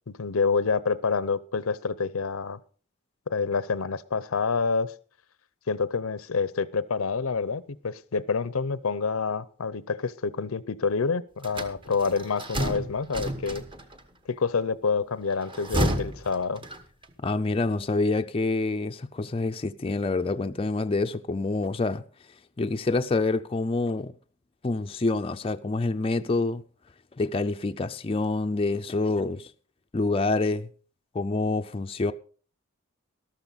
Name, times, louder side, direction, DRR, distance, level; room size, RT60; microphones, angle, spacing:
voice 1, 0.1-2.6 3.3-4.9 5.7-13.6 14.3-16.6, left 5 dB, 85° left, 0.7 m, -27 dB
sound 1, 11.4-14.0 15.3-17.1, right 1 dB, 25° right, 1.1 m, -31 dB
voice 2, 17.2-22.0 22.6-24.1 24.6-26.6 27.2-29.5 29.9-30.7 31.1-32.1, left 3 dB, 25° left, 0.5 m, -27 dB
13.0 x 12.5 x 4.0 m
head